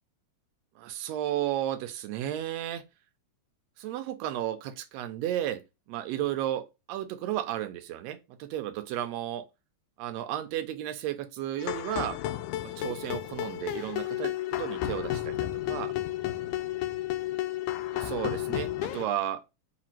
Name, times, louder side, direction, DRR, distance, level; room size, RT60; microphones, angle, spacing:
voice 1, 0.8-2.8 3.8-5.6 5.9-9.5 10.0-12.2 12.6-14.3 14.6-15.9 17.9-19.4, right 12 dB, 75° right, 1.6 m, -33 dB
sound 1, 11.6-19.1, left 14 dB, 85° left, 2.0 m, -32 dB
5.0 x 2.3 x 4.3 m
omnidirectional pair, 3.5 m